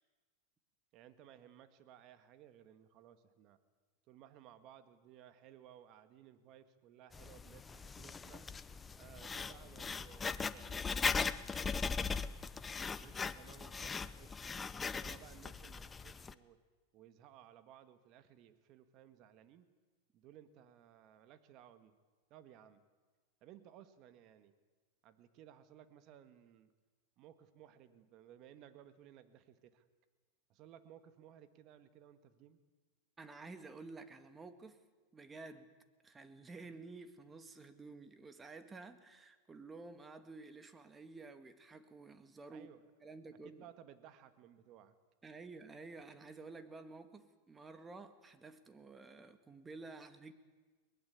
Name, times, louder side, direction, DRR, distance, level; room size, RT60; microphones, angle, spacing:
voice 1, 0.9-3.6 4.1-8.5 9.0-12.3 13.0-16.6 16.9-19.7 20.1-22.0 22.3-22.8 23.4-24.5 25.0-26.7 27.2-29.8 30.5-32.6 42.5-42.8 43.4-45.0, right 10 dB, 45° right, 11 dB, 1.9 m, -59 dB
Writing, 7.1-16.3, left 5 dB, 15° left, 0.8 m, -39 dB
voice 2, 33.2-34.8 35.1-35.7 36.0-42.7 43.0-43.7 45.2-50.3, right 3 dB, 15° right, 10 dB, 2.0 m, -52 dB
22.5 x 20.0 x 8.6 m, 1.3 s
hypercardioid pair, 120°, 0 cm